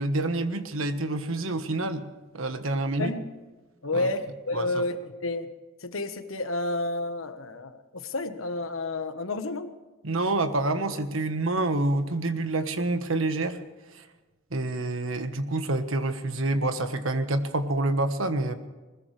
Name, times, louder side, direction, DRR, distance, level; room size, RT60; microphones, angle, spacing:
voice 1, 0.0-3.1 3.9-4.1 4.5-4.8 10.0-13.6 13.9-14.0 14.5-18.5, right 2 dB, 75° right, 9 dB, 1.4 m, -27 dB
voice 2, 3.8-5.5 5.8-9.7, left 2 dB, 80° left, 9 dB, 1.3 m, -30 dB
20.5 x 20.5 x 3.4 m, 1.2 s
head